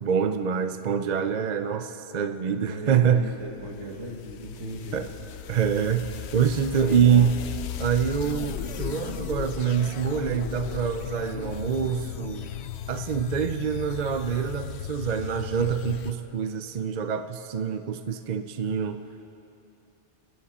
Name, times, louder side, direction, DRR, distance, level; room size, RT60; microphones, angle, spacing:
voice 1, 0.0-3.3 4.9-5.1 5.5-6.1 6.3-7.4 7.8-12.5 12.9-19.0, right 7 dB, 45° right, 8 dB, 0.6 m, -25 dB
voice 2, 2.7-5.0 6.8-7.3, right 1 dB, 75° right, 0 dB, 2.2 m, -37 dB
sound 1, 3.3-16.1, left 10 dB, 70° left, 0.8 m, -36 dB
27.5 x 10.0 x 4.3 m, 2.8 s
omnidirectional pair, 1.2 m